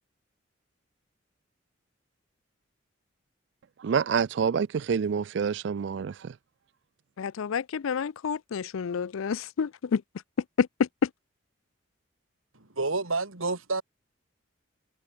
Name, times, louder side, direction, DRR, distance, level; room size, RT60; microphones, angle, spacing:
voice 1, 3.8-6.1, right 6 dB, 60° right, 0.3 m, -27 dB
voice 2, 7.2-10.0 10.6-11.1, left 6 dB, 80° left, 0.4 m, -28 dB
voice 3, 12.5-13.8, right 3 dB, 85° right, 2.9 m, -29 dB
head